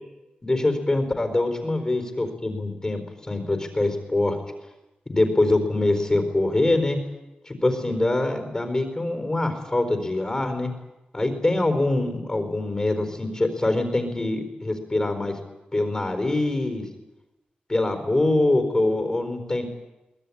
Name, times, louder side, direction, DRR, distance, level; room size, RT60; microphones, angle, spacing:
voice 1, 0.4-3.0 3.3-4.4 5.1-7.0 7.5-10.7 11.1-15.4 15.7-16.9 17.7-19.6, left 2 dB, 20° left, 6 dB, 4.3 m, -24 dB
23.5 x 20.0 x 9.9 m, 0.99 s
wide cardioid pair, 130°, 3 cm